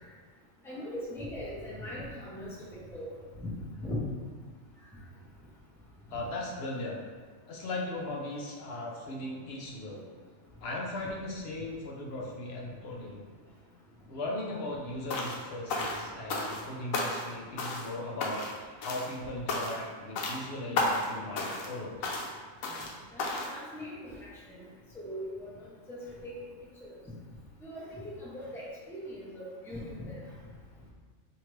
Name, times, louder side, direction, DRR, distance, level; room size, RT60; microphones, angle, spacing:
voice 1, 0.6-3.5 3.8-4.0 22.7-22.8 23.1-24.6 24.9-25.5 25.9-26.3 26.8-27.0 27.6-30.2, left 1 dB, ahead, -7 dB, 0.7 m, -40 dB
voice 2, 6.1-7.0 7.5-10.1 10.6-13.3 14.1-22.2, left 1 dB, 55° left, -2 dB, 0.9 m, -38 dB
sound 1, 15.1-15.4 15.7-16.7 16.9-17.3 17.6-17.9 18.2-18.6 18.8-19.1 19.5-19.9 20.2-20.4 20.8-21.1 21.4-21.7 22.0-22.3 22.6-22.9 23.2-23.5, left 2 dB, 85° left, 1.1 m, -32 dB
4.6 x 2.8 x 3.1 m, 1.5 s
omnidirectional pair, 1.4 m